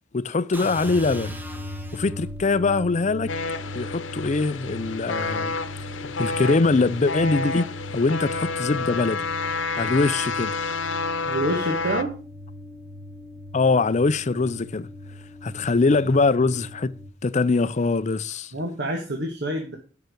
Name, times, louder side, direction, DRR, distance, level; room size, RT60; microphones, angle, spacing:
voice 1, 0.1-1.4 1.9-3.3 3.8-5.5 6.2-7.7 7.9-9.2 9.7-10.5 13.5-14.9 15.4-16.9 17.2-18.5, left 3 dB, 40° left, 0.5 m, -22 dB
sound 1, 0.5-2.5, equal, 10° right, 1.3 m, -38 dB
sound 2, 0.8-17.1, left 1 dB, 5° left, 2.5 m, -39 dB
sound 3, 3.3-12.0, left 4 dB, 90° left, 0.9 m, -29 dB
voice 2, 11.2-12.1 18.5-19.8, right 1 dB, 60° right, 1.6 m, -27 dB
9.5 x 5.8 x 6.5 m
head